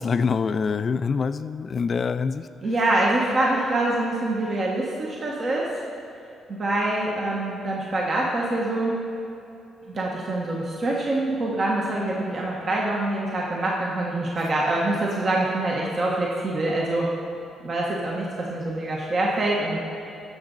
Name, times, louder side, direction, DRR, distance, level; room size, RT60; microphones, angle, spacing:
voice 1, 0.0-2.5, left 5 dB, 45° left, 13 dB, 0.3 m, -25 dB
voice 2, 2.6-5.7 6.5-9.1 9.9-17.1 17.6-19.8, right 2 dB, 45° right, -3 dB, 1.3 m, -25 dB
14.5 x 6.1 x 3.9 m, 2.7 s
cardioid pair, 90°, 0 cm